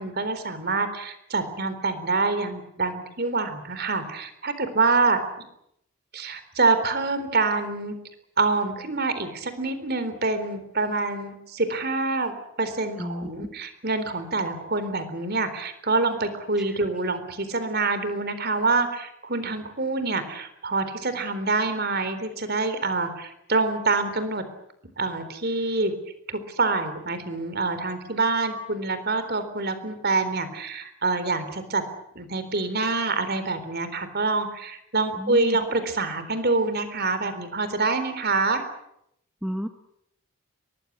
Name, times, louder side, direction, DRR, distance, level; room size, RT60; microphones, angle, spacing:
voice 1, 0.0-5.2 6.1-8.0 8.4-24.4 25.0-25.9 26.3-31.8 32.2-38.6, right 3 dB, 45° right, 11 dB, 3.9 m, -26 dB
voice 2, 13.0-13.5 35.2-35.6 39.4-39.7, equal, 5° right, 6 dB, 1.3 m, -31 dB
23.5 x 20.0 x 9.6 m, 0.76 s
head